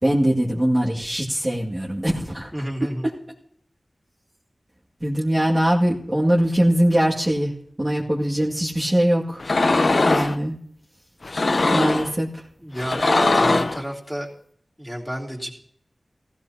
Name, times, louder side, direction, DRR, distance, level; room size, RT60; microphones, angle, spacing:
voice 1, 0.0-3.1 5.0-7.5 7.8-9.4 10.0-10.5 11.7-12.3, right 1 dB, 30° right, -5 dB, 2.2 m, -22 dB
voice 2, 2.5-3.1 12.6-14.3 14.8-15.5, equal, 5° right, -3 dB, 3.3 m, -30 dB
sound 1, 9.4-10.4 11.2-12.1 12.8-13.8, left 2 dB, 65° left, 0.7 m, -20 dB
18.0 x 15.5 x 2.9 m, 0.64 s
wide cardioid pair, 55°, 0 cm